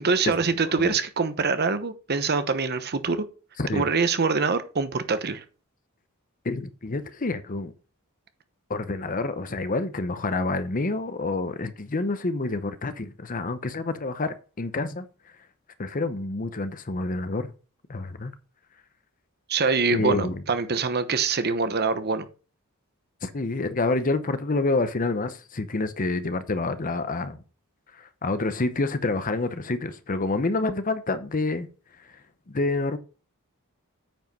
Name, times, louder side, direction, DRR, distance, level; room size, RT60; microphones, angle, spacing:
voice 1, 0.0-3.3 3.7-5.4 19.5-22.3, right 4 dB, 45° right, 1.0 m, -24 dB
voice 2, 3.6-3.9 6.4-7.7 8.7-15.1 15.8-17.5 17.9-18.3 19.9-20.4 23.2-27.4 27.9-31.7 32.0-32.2 32.5-33.0, left 3 dB, 40° left, 0.8 m, -28 dB
9.0 x 5.4 x 5.4 m
head